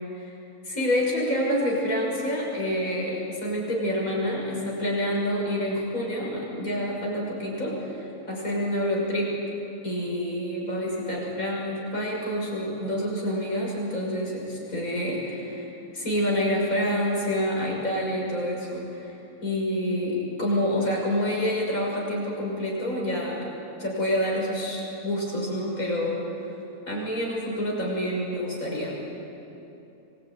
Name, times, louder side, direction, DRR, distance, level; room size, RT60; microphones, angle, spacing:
voice 1, 0.6-9.4 9.8-15.7 15.9-19.1 19.4-23.5 23.8-26.3 26.8-29.0, equal, 70° left, -3 dB, 6.9 m, -27 dB
25.5 x 21.5 x 9.4 m, 2.9 s
omnidirectional pair, 1.5 m